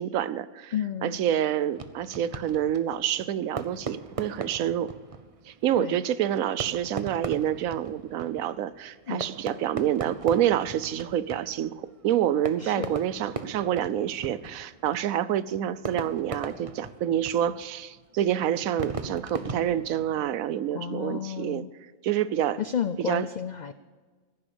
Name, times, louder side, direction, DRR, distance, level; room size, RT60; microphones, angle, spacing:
voice 1, 0.0-0.7 1.0-4.9 5.5-21.7 22.0-22.6 23.0-23.3, right 10 dB, 90° right, 16 dB, 1.1 m, -27 dB
voice 2, 0.7-1.2 5.8-6.0 9.1-9.3 12.6-12.9 20.7-21.7 22.6-23.7, left 8 dB, 85° left, 12 dB, 0.4 m, -32 dB
Fireworks, 1.7-20.5, right 4 dB, 30° right, 0.7 m, -40 dB
15.5 x 10.5 x 6.9 m, 1.4 s
omnidirectional pair, 1.4 m